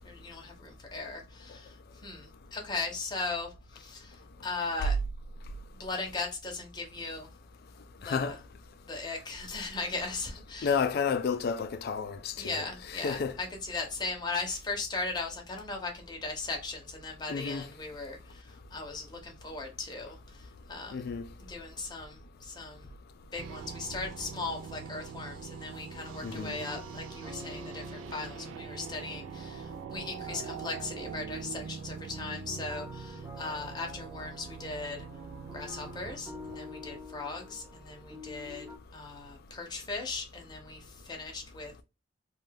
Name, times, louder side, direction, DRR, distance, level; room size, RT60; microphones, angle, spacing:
voice 1, 0.0-5.0 5.8-7.3 8.0-8.4 8.9-10.8 12.4-21.0 21.4-22.9 23.3-35.1 35.5-38.7 38.9-41.8, left 3 dB, 20° left, 0.7 m, -38 dB
voice 2, 8.0-8.3 10.6-12.6 12.9-13.4 17.3-17.6 20.9-21.3 26.2-26.6, left 6 dB, 55° left, 0.3 m, -31 dB
sound 1, 23.4-37.5, right 6 dB, 80° right, 0.3 m, -44 dB
sound 2, 26.3-38.8, left 2 dB, 15° right, 0.7 m, -48 dB
2.6 x 2.2 x 3.3 m
head